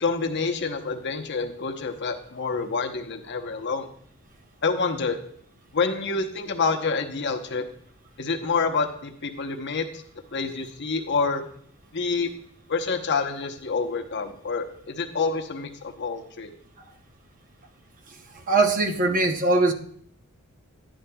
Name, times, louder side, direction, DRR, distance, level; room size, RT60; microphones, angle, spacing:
voice 1, 0.0-3.9 4.6-5.2 5.7-7.7 8.2-10.0 10.3-11.4 11.9-12.3 12.7-16.5, left 4 dB, 50° left, 4 dB, 0.8 m, -27 dB
voice 2, 18.5-19.7, right 3 dB, 35° right, 5 dB, 0.8 m, -21 dB
11.0 x 10.0 x 2.3 m, 0.64 s
head